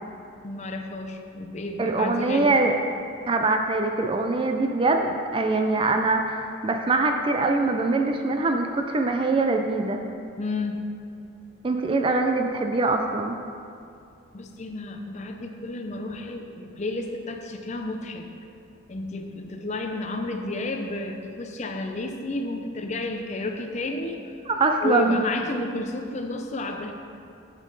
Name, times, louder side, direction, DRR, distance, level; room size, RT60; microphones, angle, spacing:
voice 1, 0.4-2.6 10.4-10.9 14.3-18.3 18.9-24.3 24.8-26.9, left 2 dB, 35° left, 4 dB, 0.5 m, -31 dB
voice 2, 1.8-2.7 3.3-10.0 11.6-13.4 24.5-25.3, right 3 dB, 25° right, 4 dB, 0.3 m, -23 dB
7.3 x 7.3 x 3.9 m, 2.5 s
head